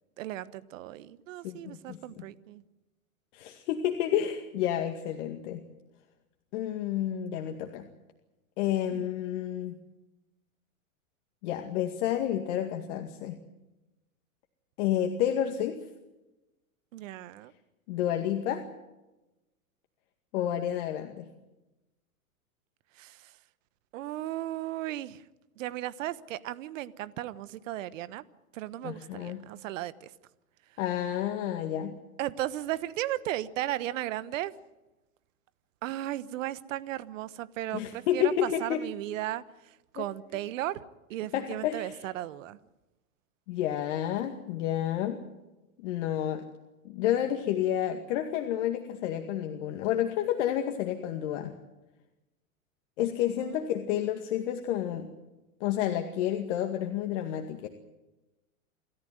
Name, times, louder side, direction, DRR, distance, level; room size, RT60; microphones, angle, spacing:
voice 1, 0.2-2.6 8.9-9.1 16.9-17.5 23.0-23.3 23.9-25.2 25.6-28.2 28.5-30.1 32.2-34.5 35.8-42.6 53.4-53.6, right 14 dB, 60° right, 1.3 m, -36 dB
voice 2, 1.4-2.2 3.3-5.6 6.5-7.9 8.6-9.8 11.4-13.4 14.8-15.8 17.9-18.6 20.3-21.3 28.8-29.4 30.8-32.0 37.7-38.8 40.0-40.1 41.3-42.0 43.5-45.2 45.8-46.4 46.8-51.5 53.0-55.1 55.6-57.7, left 11 dB, 55° left, 2.2 m, -30 dB
27.5 x 14.5 x 9.5 m
hypercardioid pair, 115°, 43 cm